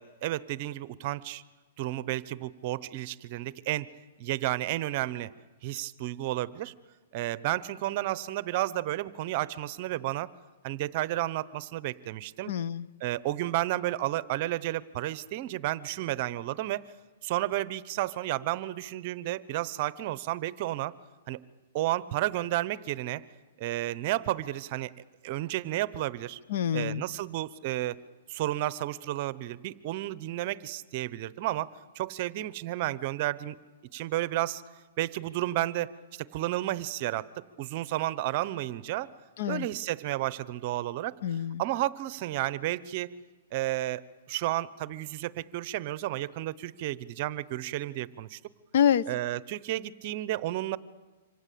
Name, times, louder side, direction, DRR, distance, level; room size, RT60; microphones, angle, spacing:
voice 1, 0.0-1.4 1.8-3.9 4.2-5.3 5.6-6.7 7.1-10.3 10.6-12.5 13.0-16.8 17.2-20.9 21.3-21.4 21.7-23.2 23.6-24.9 25.2-26.4 26.7-28.0 28.3-31.7 31.9-33.6 33.9-34.6 35.0-35.9 36.2-39.1 39.5-41.2 41.6-43.1 43.5-48.4 49.1-50.8, right 15 dB, 40° right, 18 dB, 0.9 m, -32 dB
voice 2, 12.5-12.9 26.5-27.0 39.4-39.7 41.2-41.6 48.7-49.1, left 9 dB, 60° left, 17 dB, 0.8 m, -26 dB
27.5 x 25.5 x 8.6 m, 1.3 s
hypercardioid pair, 155°, 0 cm